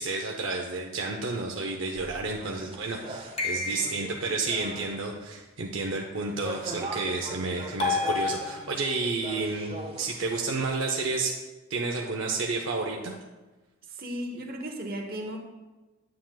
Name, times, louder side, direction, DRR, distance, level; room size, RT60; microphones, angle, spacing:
voice 1, 0.0-11.4 11.7-13.1, right 3 dB, 70° right, 1 dB, 0.6 m, -31 dB
sound 1, 1.9-5.2 6.3-10.6, right 2 dB, 30° right, 0.7 m, -42 dB
voice 2, 2.4-2.8 13.9-15.4, equal, 50° right, 2 dB, 1.0 m, -36 dB
sound 2, 3.4-4.3 7.8-9.0, left 3 dB, 30° left, 1.1 m, -30 dB
9.4 x 7.4 x 2.3 m, 1.2 s
head